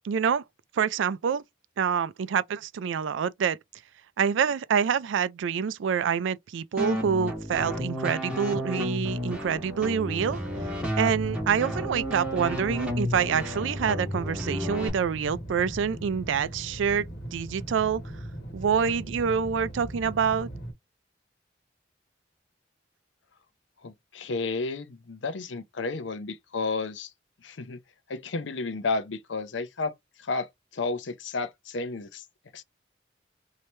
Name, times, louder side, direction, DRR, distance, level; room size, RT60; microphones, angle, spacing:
voice 1, 0.0-0.4 0.7-1.4 1.8-3.6 4.2-10.4 11.0-18.0 18.5-20.5, right 7 dB, 90° right, 0.4 m, -26 dB
sound 1, 6.8-14.9, equal, 5° right, 1.2 m, -32 dB
sound 2, 10.2-20.7, right 1 dB, 55° left, 1.3 m, -39 dB
voice 2, 23.8-27.1 27.4-27.8 28.1-29.9 30.2-32.2 32.5-32.6, left 3 dB, 80° left, 0.6 m, -32 dB
3.0 x 2.7 x 3.2 m
head